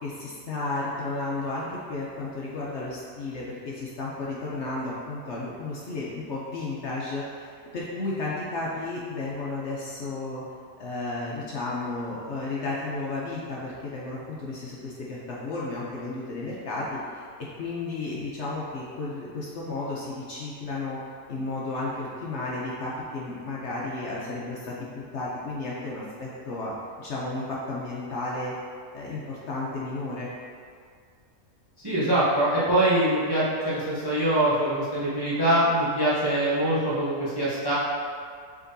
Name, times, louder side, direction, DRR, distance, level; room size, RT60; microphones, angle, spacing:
voice 1, 0.0-10.4 10.8-17.3 17.6-21.0 21.3-28.5 28.9-30.3, left 2 dB, 60° left, -5 dB, 0.8 m, -33 dB
voice 2, 31.8-37.7, right 1 dB, 25° right, -10 dB, 0.6 m, -23 dB
5.0 x 3.6 x 2.6 m, 2.1 s
omnidirectional pair, 1.6 m